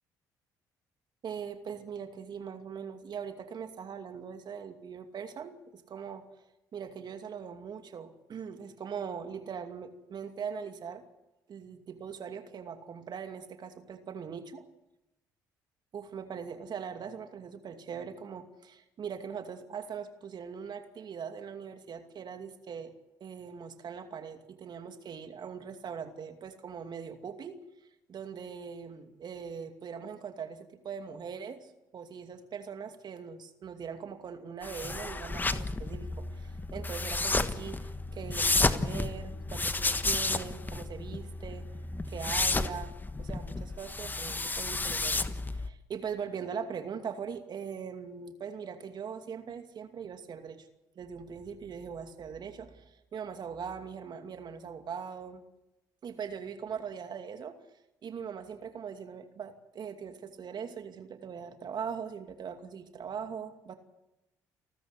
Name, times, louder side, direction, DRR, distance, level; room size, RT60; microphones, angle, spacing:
voice 1, 1.2-6.3 6.7-11.0 11.5-14.4 15.9-22.9 23.2-27.6 28.1-41.7 42.1-50.7 50.9-55.4 56.0-57.6 58.0-63.7, right 7 dB, 50° right, 7 dB, 2.5 m, -41 dB
sound 1, 34.6-45.7, left 3 dB, 20° left, 1.4 m, -32 dB
30.0 x 13.5 x 8.3 m, 0.93 s
hypercardioid pair, 55°, 9 cm